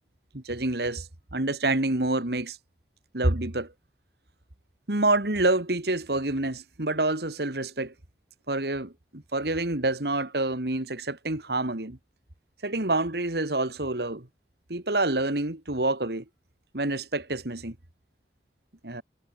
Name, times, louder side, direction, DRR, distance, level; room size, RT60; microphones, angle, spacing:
voice 1, 0.3-1.1 1.3-2.6 3.1-3.7 4.9-7.9 8.5-12.0 12.6-14.3 14.7-16.2 16.7-17.7 18.8-19.0, right 2 dB, 60° right, 2.2 m, -27 dB
head